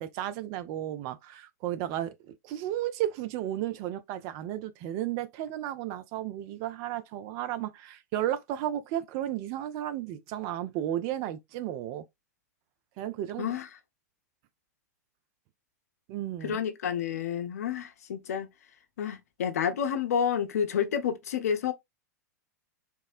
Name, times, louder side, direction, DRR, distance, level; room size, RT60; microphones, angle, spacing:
voice 1, 0.0-2.1 2.4-12.0 13.0-13.5 16.1-16.6, right 12 dB, 40° right, 0.3 m, -33 dB
voice 2, 13.4-13.7 16.4-18.5 19.0-21.7, left 8 dB, 65° left, 0.5 m, -29 dB
3.5 x 2.1 x 2.4 m
figure-of-eight pair, 95°, 9 cm